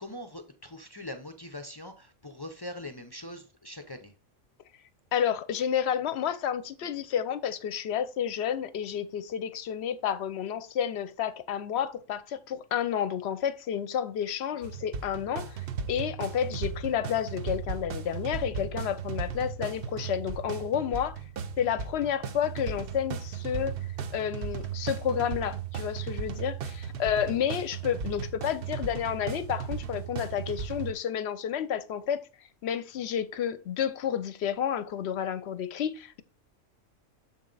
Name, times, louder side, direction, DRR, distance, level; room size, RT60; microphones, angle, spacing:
voice 1, 0.0-4.1, left 1 dB, 35° left, 0.4 m, -42 dB
voice 2, 5.1-15.6 15.9-21.2 21.6-23.7 24.1-32.2 32.6-36.2, left 9 dB, 65° left, 0.8 m, -30 dB
sound 1, 14.6-30.9, right 6 dB, 55° right, 0.7 m, -36 dB
7.2 x 4.2 x 3.9 m
omnidirectional pair, 1.3 m